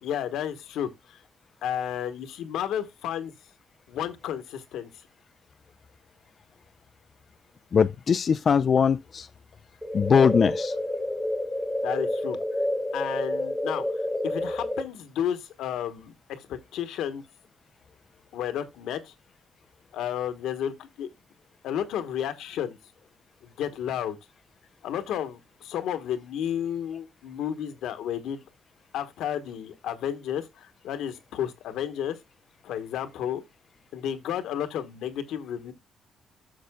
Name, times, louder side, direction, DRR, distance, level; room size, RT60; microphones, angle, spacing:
voice 1, 0.0-1.2 1.6-3.3 3.9-4.9 11.8-12.4 12.9-13.8 14.2-17.2 18.3-19.1 19.9-21.1 21.6-22.8 23.4-24.2 24.8-28.4 28.9-32.2 32.6-33.4 33.9-35.7, left 9 dB, 85° left, 1.2 m, -32 dB
voice 2, 7.7-9.3 9.9-10.7, left 6 dB, 45° left, 0.4 m, -21 dB
sound 1, 9.8-14.8, left 1 dB, ahead, 1.2 m, -29 dB
12.5 x 6.6 x 2.2 m
cardioid pair, 90°, 0 cm